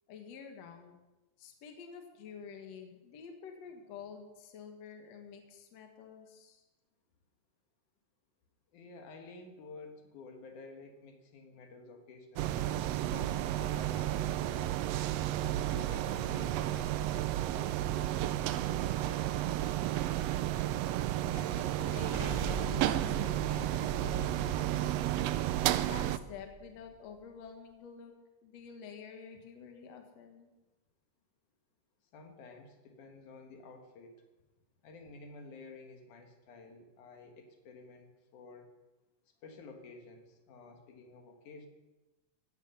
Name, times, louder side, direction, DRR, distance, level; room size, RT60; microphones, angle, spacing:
voice 1, 0.1-1.0 1.4-6.7 21.3-25.0 25.7-28.2 28.4-30.5, left 6 dB, 60° left, 4 dB, 2.6 m, -49 dB
voice 2, 8.7-14.8 15.5-20.0 32.1-34.2 34.8-38.7 39.4-41.7, left 3 dB, 75° left, 4 dB, 3.0 m, -52 dB
sound 1, 12.4-26.2, right 13 dB, 80° right, 1.4 m, -32 dB
Explosion, 22.1-27.0, right 1 dB, 30° right, 0.7 m, -43 dB
16.0 x 13.5 x 5.6 m, 1.1 s
omnidirectional pair, 3.6 m